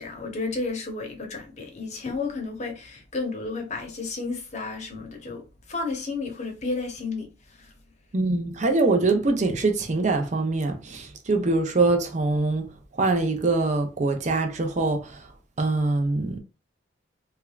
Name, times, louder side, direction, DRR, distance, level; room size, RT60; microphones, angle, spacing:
voice 1, 0.0-7.7, left 3 dB, 40° left, 1.0 m, -32 dB
voice 2, 8.1-12.7 13.0-15.3 15.6-16.4, right 3 dB, 40° right, 0.6 m, -23 dB
3.4 x 3.4 x 2.3 m
head